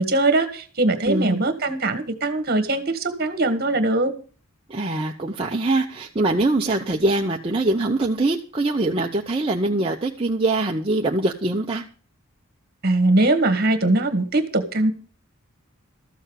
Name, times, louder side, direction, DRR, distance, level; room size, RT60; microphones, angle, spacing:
voice 1, 0.0-4.1 12.8-14.9, right 2 dB, 45° right, 9 dB, 1.7 m, -21 dB
voice 2, 1.1-1.4 4.7-11.8, right 2 dB, 25° right, 0 dB, 0.8 m, -23 dB
13.5 x 7.2 x 6.4 m, 0.39 s
head